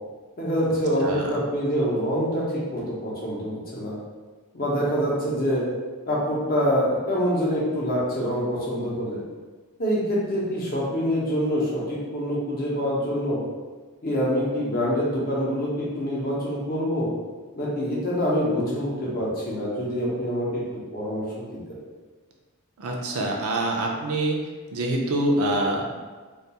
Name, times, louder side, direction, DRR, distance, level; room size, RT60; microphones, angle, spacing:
voice 1, 0.4-4.0 4.5-5.6 6.1-9.2 9.8-13.4 14.0-17.1 17.6-20.6 20.9-21.8, equal, 40° left, -5 dB, 0.6 m, -25 dB
voice 2, 22.8-24.4 24.7-25.9, right 1 dB, 75° right, 0 dB, 0.4 m, -25 dB
2.3 x 2.2 x 2.8 m, 1.4 s
head